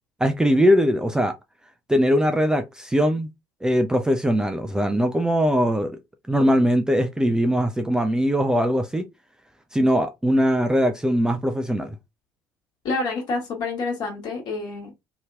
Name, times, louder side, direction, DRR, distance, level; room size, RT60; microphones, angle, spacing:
voice 1, 0.2-1.3 1.9-3.3 3.6-5.9 6.3-9.0 9.7-12.0, equal, 5° right, 0.4 m, -21 dB
voice 2, 12.8-14.9, left 3 dB, 50° left, 1.5 m, -28 dB
2.9 x 2.8 x 2.3 m
figure-of-eight pair, 60°, 10 cm